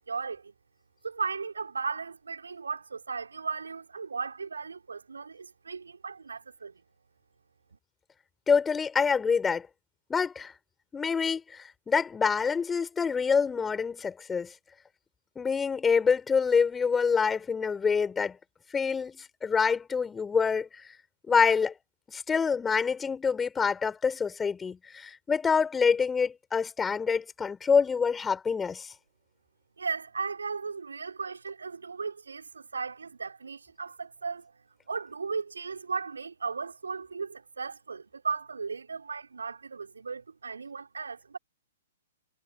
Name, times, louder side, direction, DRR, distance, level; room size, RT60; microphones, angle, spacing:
voice 1, 0.1-0.5 1.0-6.7 29.8-34.5 34.9-41.4, right 5 dB, 75° right, 4.0 m, -36 dB
voice 2, 8.5-9.7 10.1-10.5 10.9-14.5 15.4-18.4 18.7-20.8 21.3-21.7 22.1-28.9, left 5 dB, 15° left, 5.2 m, -26 dB
figure-of-eight pair, 115°, 0 cm